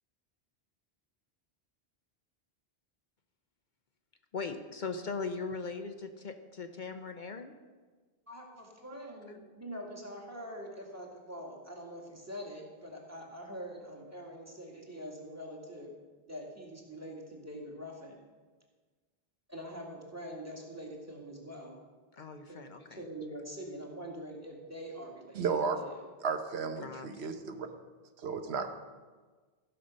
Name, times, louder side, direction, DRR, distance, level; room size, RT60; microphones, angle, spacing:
voice 1, 4.3-7.5 22.1-23.0 26.8-27.1, left 4 dB, 55° left, 7 dB, 0.8 m, -39 dB
voice 2, 8.3-15.9 16.3-18.2 19.5-21.8 22.5-25.5 25.8-25.9, equal, 15° right, -1 dB, 2.0 m, -44 dB
voice 3, 25.3-25.8 26.2-27.7 28.2-28.7, right 5 dB, 85° right, 7 dB, 1.1 m, -33 dB
15.0 x 5.7 x 6.4 m, 1.4 s
omnidirectional pair, 1.1 m